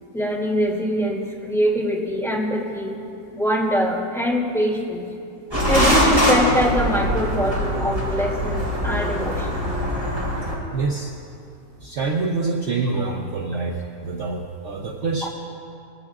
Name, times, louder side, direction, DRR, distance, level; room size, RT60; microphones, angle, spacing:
voice 1, 0.1-3.0 3.3-5.0 5.7-9.6 15.2-15.3, equal, ahead, -5 dB, 2.4 m, -23 dB
sound 1, 5.5-10.6, equal, 15° right, 3.2 m, -22 dB
voice 2, 10.7-11.1 11.8-15.3, right 3 dB, 55° right, 0 dB, 1.1 m, -26 dB
21.5 x 15.5 x 2.4 m, 2.7 s
omnidirectional pair, 1.7 m